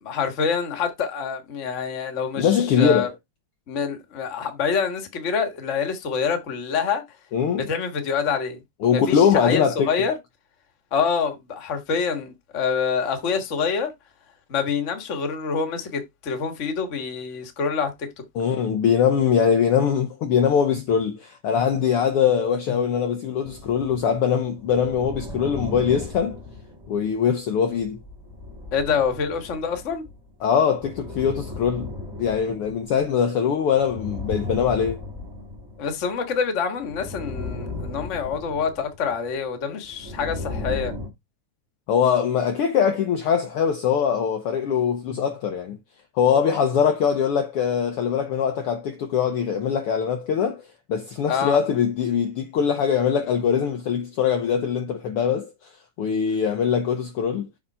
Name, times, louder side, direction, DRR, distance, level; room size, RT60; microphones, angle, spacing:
voice 1, 0.0-3.1 3.7-7.0 7.6-8.6 8.9-10.1 10.9-13.9 14.5-17.9 28.7-30.0 35.8-40.9 51.3-51.6, left 6 dB, 40° left, 1.0 m, -26 dB
voice 2, 2.4-3.1 7.3-7.7 8.8-9.9 18.3-26.4 26.9-28.0 30.4-31.9 32.2-35.0 41.9-45.8 46.1-55.5 56.0-57.5, left 7 dB, 80° left, 1.3 m, -22 dB
sound 1, 23.4-24.2 24.5-27.3 27.8-30.3 30.7-33.3 33.7-36.3 36.8-39.3 39.8-41.1, left 3 dB, 15° right, 0.8 m, -36 dB
7.2 x 3.7 x 5.5 m
omnidirectional pair, 3.6 m